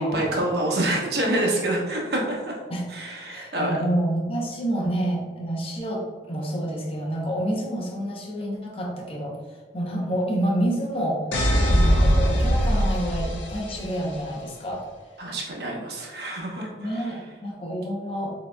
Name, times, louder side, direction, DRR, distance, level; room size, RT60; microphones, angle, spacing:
voice 1, 0.0-2.6 2.9-3.8 15.2-17.1, right 1 dB, 60° right, -2 dB, 1.0 m, -27 dB
voice 2, 3.3-9.4 9.7-11.2 11.7-14.8 16.8-18.3, right 1 dB, 30° left, -2 dB, 0.7 m, -28 dB
sound 1, 11.3-14.2, equal, 85° left, 0.6 m, -21 dB
6.6 x 2.9 x 2.2 m, 1.5 s
head